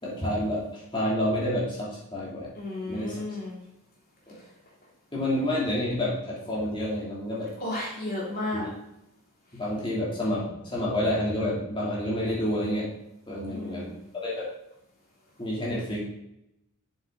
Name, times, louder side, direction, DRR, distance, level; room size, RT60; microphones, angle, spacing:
voice 1, 0.0-2.5 2.9-3.2 4.3-4.4 5.1-7.5 8.5-8.7 9.5-12.9 13.3-14.3 15.4-16.0, left 1 dB, 20° left, -6 dB, 2.9 m, -29 dB
voice 2, 2.6-3.6 7.6-8.7 13.5-14.0, left 2 dB, 40° left, -5 dB, 3.3 m, -33 dB
7.7 x 7.2 x 3.9 m, 0.82 s
head